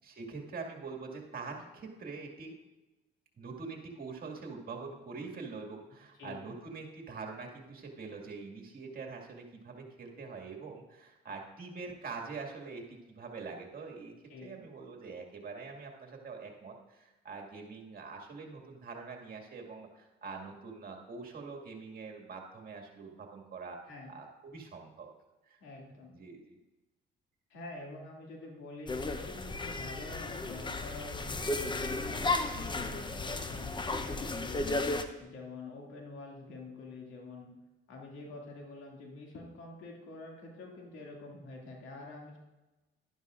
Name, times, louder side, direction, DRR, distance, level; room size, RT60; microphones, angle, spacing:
voice 1, 0.0-2.5 3.4-14.1 14.4-23.8 24.1-25.1 25.4-25.6 26.1-26.6, right 4 dB, 50° right, 1 dB, 2.0 m, -44 dB
voice 2, 6.2-6.5 14.3-14.6 23.9-24.2 25.6-26.1 27.5-34.6 35.2-37.5 37.9-42.4, left 3 dB, 85° left, -1 dB, 2.4 m, -47 dB
sound 1, 28.9-35.0, left 2 dB, 25° left, 0.8 m, -34 dB
11.5 x 11.0 x 2.5 m, 1.1 s
cardioid pair, 90°, 20 cm